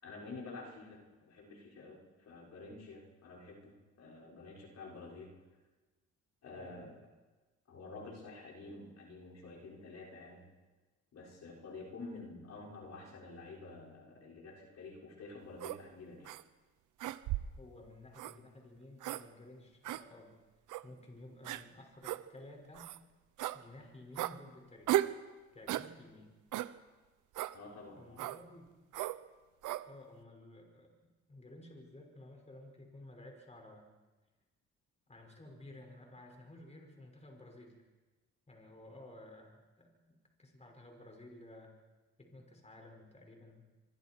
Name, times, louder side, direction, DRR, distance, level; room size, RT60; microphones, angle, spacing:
voice 1, 0.0-5.3 6.4-6.9 7.7-10.5 11.1-16.3 27.5-28.3, left 3 dB, 60° left, -2 dB, 5.8 m, -49 dB
voice 2, 6.6-7.0 17.6-20.4 20.8-22.9 23.5-25.1 25.5-26.3 27.9-28.7 29.9-30.9 31.3-33.9 35.1-37.8 38.5-39.9 40.4-41.7 42.2-43.7, left 1 dB, 20° left, 2 dB, 6.0 m, -54 dB
sound 1, 15.6-15.8 16.2-16.4 17.0-17.6 18.2-18.3 19.0-19.2 19.8-20.0 20.7-20.8 21.4-21.6 22.0-22.2 22.7-23.0 23.4-23.6 24.2-24.3 24.9-25.2 25.7-25.9 26.5-26.7 27.3-27.5 28.2-28.4 28.9-29.2 29.6-29.8, right 14 dB, 90° right, 0.9 m, -35 dB
25.5 x 24.0 x 4.7 m, 1.2 s
cardioid pair, 90°, 30 cm